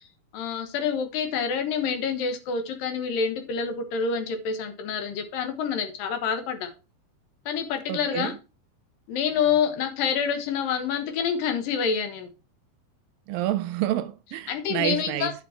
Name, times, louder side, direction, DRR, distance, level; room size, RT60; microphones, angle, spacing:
voice 1, 0.3-6.7 7.5-8.3 9.1-12.3 14.5-15.3, left 6 dB, 70° left, 2.8 m, -27 dB
voice 2, 7.9-8.4 13.3-15.3, right 14 dB, 80° right, 2.2 m, -28 dB
9.7 x 6.2 x 4.3 m
omnidirectional pair, 4.3 m